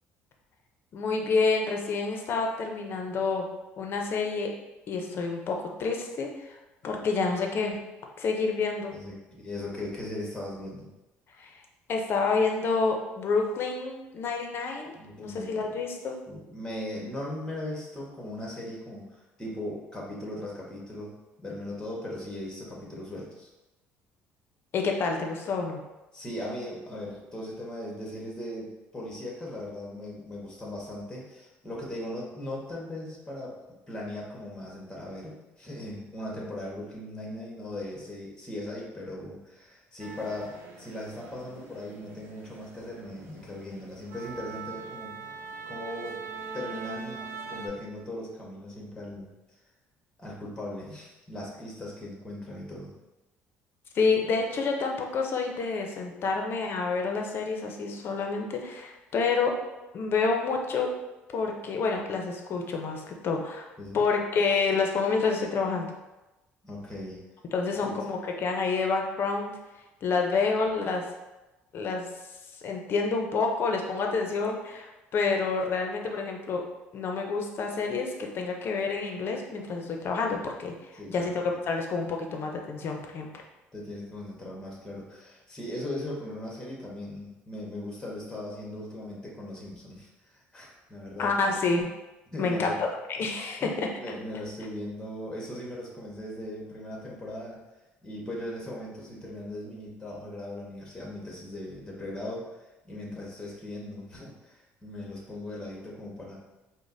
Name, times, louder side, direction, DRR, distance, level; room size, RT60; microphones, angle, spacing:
voice 1, 0.9-3.5 3.8-4.5 4.9-6.6 6.8-7.8 8.2-8.9 11.4-11.6 11.9-16.2 24.7-25.8 53.9-59.6 59.9-60.9 61.3-63.7 63.9-65.9 67.5-69.5 70.0-71.1 71.7-72.1 72.5-76.6 76.9-83.3 91.2-91.9 92.4-93.9, left 4 dB, 50° left, 2 dB, 0.6 m, -28 dB
voice 2, 8.9-10.9 14.9-15.8 16.3-21.1 21.4-23.5 26.1-33.6 33.9-45.2 45.7-46.2 46.5-49.3 50.2-52.9 63.8-64.0 66.6-67.2 67.8-68.0 81.0-81.6 83.7-90.1 90.5-91.4 92.3-92.8 93.6-97.6 98.0-102.4 102.8-106.4, left 1 dB, 15° left, -3 dB, 1.2 m, -38 dB
sound 1, 40.0-47.7, right 5 dB, 75° right, 0.7 m, -42 dB
4.9 x 2.1 x 2.6 m, 1.0 s
cardioid pair, 95°, 5 cm